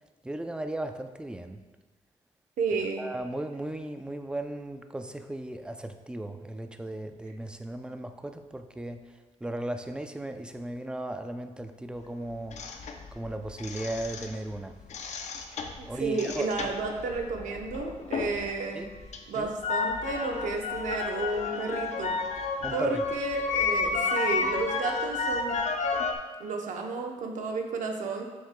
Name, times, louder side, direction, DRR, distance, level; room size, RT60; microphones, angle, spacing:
voice 1, 0.2-1.6 3.0-9.0 9.4-12.9 13.1-14.7 15.3-15.4 15.9-16.7 18.8-18.9 19.4-19.5 22.6-23.0, right 1 dB, 5° right, 7 dB, 0.4 m, -36 dB
voice 2, 2.6-3.0 15.8-18.9 19.3-22.1 22.7-25.6 26.4-28.3, right 3 dB, 90° right, 3 dB, 0.8 m, -32 dB
sound 1, 12.5-14.5 14.8-18.5 18.8-26.2, left 4 dB, 65° left, 0.6 m, -31 dB
6.9 x 6.3 x 2.2 m, 1.3 s
cardioid pair, 105°, 13 cm